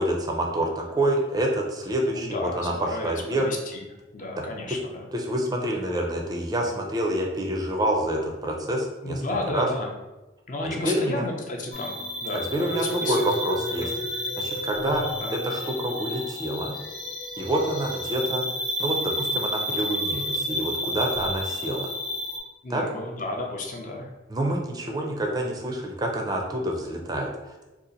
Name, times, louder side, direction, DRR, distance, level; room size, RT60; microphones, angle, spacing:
voice 1, 0.0-3.5 4.3-4.4 4.7-4.8 5.1-9.2 9.5-9.7 10.8-11.2 12.3-13.9 14.4-15.1 15.3-16.8 17.4-18.5 18.8-21.9 22.7-22.8 24.3-27.6, right 1 dB, 20° right, 1 dB, 0.4 m, -27 dB
voice 2, 2.1-3.9 4.1-5.1 9.0-9.9 10.5-13.2 13.8-13.9 15.2-15.3 22.6-24.1, left 2 dB, 45° left, 1 dB, 0.5 m, -32 dB
sound 1, 11.7-22.4, left 1 dB, 70° left, 0.8 m, -30 dB
2.7 x 2.4 x 3.8 m, 1.1 s
head